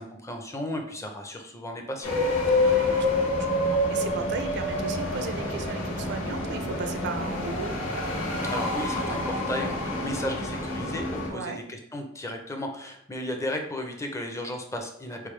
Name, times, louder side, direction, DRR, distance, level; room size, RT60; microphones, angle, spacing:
voice 1, 0.0-2.1 8.4-15.3, left 1 dB, 15° left, 3 dB, 0.5 m, -34 dB
sound 1, 2.0-11.3, left 2 dB, 90° left, 1.5 m, -27 dB
voice 2, 3.1-7.8 11.3-11.6, right 4 dB, 55° right, 7 dB, 0.4 m, -36 dB
4.1 x 3.4 x 3.2 m, 0.71 s
head